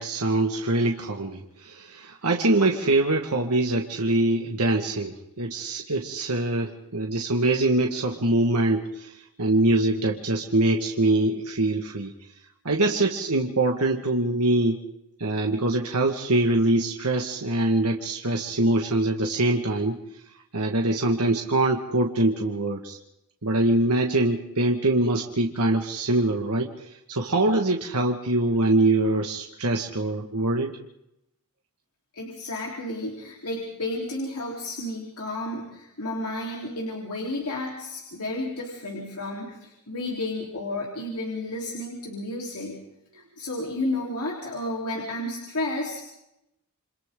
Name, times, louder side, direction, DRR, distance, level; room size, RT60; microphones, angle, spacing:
voice 1, 0.0-12.1 12.7-14.8 15.2-20.0 20.5-23.0 23.4-30.7, right 2 dB, 85° right, 2 dB, 1.8 m, -24 dB
voice 2, 32.1-42.8 43.1-46.0, left 1 dB, 75° left, -2 dB, 3.9 m, -32 dB
29.0 x 26.0 x 3.8 m, 0.84 s
head